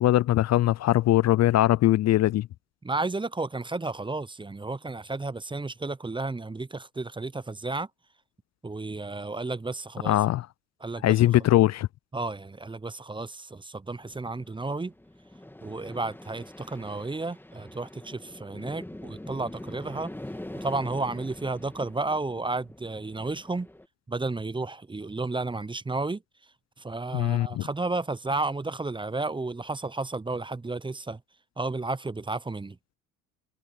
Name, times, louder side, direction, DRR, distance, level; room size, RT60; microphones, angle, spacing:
voice 1, 0.0-2.5 10.0-10.5 11.0-11.9 27.1-27.6, left 14 dB, 45° left, 0.6 m, -21 dB
voice 2, 2.8-7.9 8.6-10.2 10.8-11.2 12.1-14.9 15.6-20.1 20.5-23.7 24.1-26.2 26.8-31.2 31.6-32.8, right 3 dB, 10° right, 0.9 m, -32 dB
sound 1, 14.0-23.9, left 1 dB, 5° left, 2.0 m, -44 dB
hypercardioid pair, 60°, 38 cm